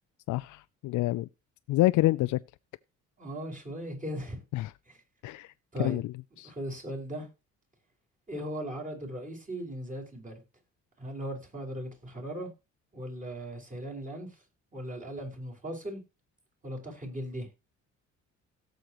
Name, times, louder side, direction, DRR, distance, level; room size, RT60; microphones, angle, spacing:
voice 1, 0.3-1.3 1.7-2.4 4.5-4.7 5.2-5.5 5.8-6.5, left 17 dB, 75° left, 0.5 m, -27 dB
voice 2, 3.2-4.4 4.9-5.0 5.7-6.0 6.4-7.3 8.3-10.4 11.0-12.5 12.9-14.3 14.7-16.0 16.6-17.5, right 1 dB, 25° right, 5.2 m, -38 dB
17.5 x 6.5 x 3.0 m
cardioid pair, 90°, 30 cm